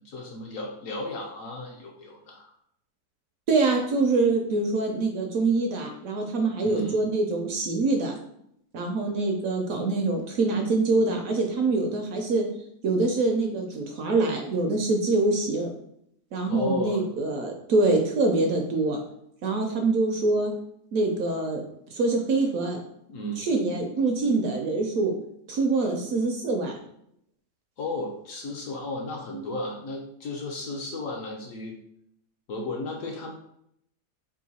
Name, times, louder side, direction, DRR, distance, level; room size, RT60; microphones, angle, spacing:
voice 1, 0.0-2.5 6.6-7.0 16.5-17.1 23.1-23.5 27.8-31.8 32.5-33.3, left 2 dB, 65° left, 1 dB, 0.8 m, -34 dB
voice 2, 3.5-8.1 8.7-12.4 12.8-15.7 16.3-19.0 19.4-20.5 20.9-21.6 21.9-22.8 23.4-25.1 25.5-26.8, right 3 dB, 70° right, 3 dB, 0.9 m, -25 dB
3.7 x 2.6 x 4.1 m, 0.73 s
omnidirectional pair, 1.8 m